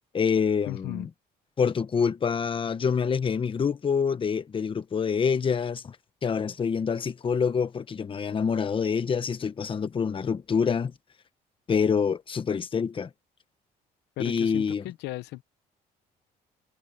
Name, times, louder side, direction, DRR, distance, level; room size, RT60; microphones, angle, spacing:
voice 1, 0.1-1.1 1.6-6.0 6.2-10.9 11.7-13.1 14.2-14.8, left 6 dB, 30° left, 1.2 m, -26 dB
voice 2, 0.7-1.1 14.2-15.4, left 18 dB, 90° left, 0.9 m, -36 dB
cardioid pair, 110°, 17 cm